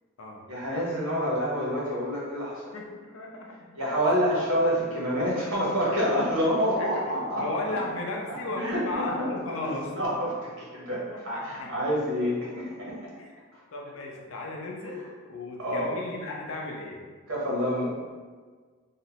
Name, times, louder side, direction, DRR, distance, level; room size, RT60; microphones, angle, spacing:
voice 1, 0.5-2.7 3.8-7.8 8.3-13.1 13.5-13.6 15.6-15.9 17.3-17.9, equal, 85° right, -6 dB, 0.9 m, -28 dB
voice 2, 2.7-3.7 6.8-6.9 7.4-9.9 10.9-11.7 13.2-13.3 13.7-17.0, left 2 dB, 85° left, 0 dB, 0.5 m, -35 dB
2.7 x 2.0 x 2.8 m, 1.5 s
head